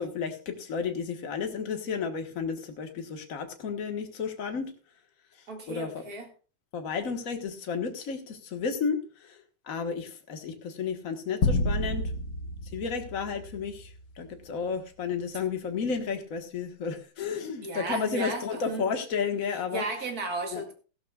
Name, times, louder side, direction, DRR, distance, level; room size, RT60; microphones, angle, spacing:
voice 1, 0.0-4.7 5.7-6.0 6.7-9.4 9.7-12.1 12.7-13.9 14.2-19.8 20.5-20.6, left 6 dB, 45° left, 1.1 m, -32 dB
voice 2, 5.5-6.3 17.6-18.9 19.7-20.7, right 3 dB, 35° right, 2.1 m, -34 dB
sound 1, 11.4-14.0, left 2 dB, 75° left, 0.8 m, -30 dB
15.5 x 13.0 x 2.4 m
omnidirectional pair, 3.5 m